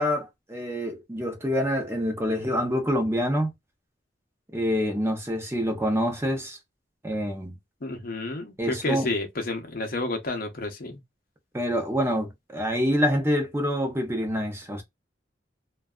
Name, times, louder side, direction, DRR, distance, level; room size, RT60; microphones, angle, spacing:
voice 1, 0.0-3.5 4.5-6.6 7.0-7.5 8.6-9.1 11.5-14.8, equal, 15° right, 0.7 m, -26 dB
voice 2, 7.8-11.0, left 2 dB, 50° left, 0.7 m, -30 dB
2.5 x 2.3 x 2.3 m
head